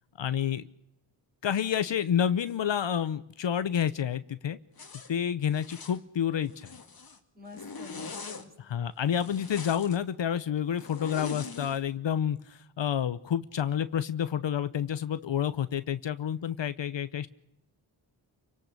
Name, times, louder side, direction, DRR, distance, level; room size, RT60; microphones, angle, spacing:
voice 1, 0.2-0.6 1.4-4.6 5.1-6.7 8.6-17.3, left 9 dB, 70° left, 14 dB, 0.9 m, -29 dB
Zipper (clothing), 4.8-5.1 5.5-6.0 6.5-7.2 7.5-8.4 9.1-10.0 10.8-11.8, left 4 dB, 50° left, 2.2 m, -41 dB
voice 2, 7.3-8.5, left 3 dB, 20° right, 3 dB, 5.2 m, -48 dB
28.5 x 18.0 x 6.7 m, 0.80 s
cardioid pair, 65°, 47 cm